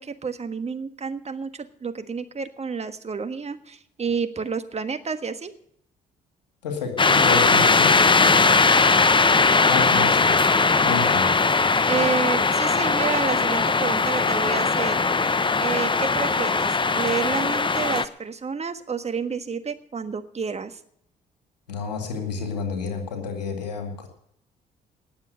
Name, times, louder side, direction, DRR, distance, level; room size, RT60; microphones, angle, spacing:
voice 1, 0.0-5.5 11.8-15.0 15.6-20.8, right 5 dB, 30° right, 9 dB, 1.5 m, -29 dB
voice 2, 6.6-8.6 9.7-10.4 10.8-11.4 21.7-24.1, left 5 dB, 85° left, 4 dB, 2.2 m, -30 dB
sound 1, 7.0-18.1, left 4 dB, 25° left, 0.9 m, -19 dB
19.0 x 7.3 x 6.6 m, 0.71 s
hypercardioid pair, 45°, 21 cm